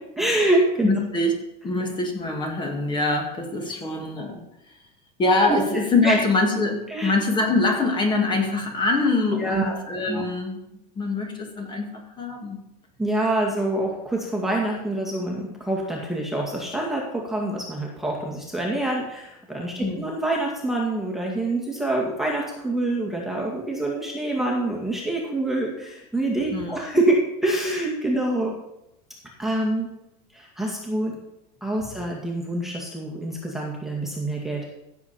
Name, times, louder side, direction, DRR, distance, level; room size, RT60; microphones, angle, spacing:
voice 1, 0.2-1.0 6.0-6.1 6.9-7.1 9.4-9.8 10.1-10.2 13.0-28.5 29.4-29.9 30.3-31.2 31.6-34.7, right 1 dB, ahead, -3 dB, 2.0 m, -26 dB
voice 2, 0.8-1.3 1.6-4.4 5.2-10.6 11.0-12.6 19.8-20.1 26.5-26.9, left 3 dB, 20° left, 2 dB, 2.3 m, -24 dB
15.5 x 7.3 x 4.4 m, 0.85 s
supercardioid pair, 140°, 21 cm